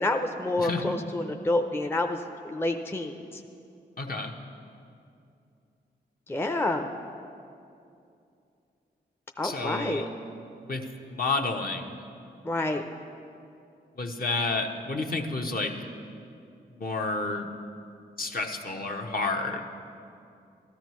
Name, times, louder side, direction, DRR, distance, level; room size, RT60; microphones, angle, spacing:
voice 1, 0.0-3.4 6.3-6.9 9.4-10.0 12.4-12.8, left 2 dB, 10° left, 4 dB, 0.6 m, -28 dB
voice 2, 0.6-1.0 4.0-4.3 9.4-10.1 10.7-11.9 14.0-15.7 16.7-17.5 18.2-19.6, left 3 dB, 50° left, 1 dB, 1.1 m, -30 dB
13.0 x 13.0 x 3.1 m, 2.6 s
supercardioid pair, 40°, 19 cm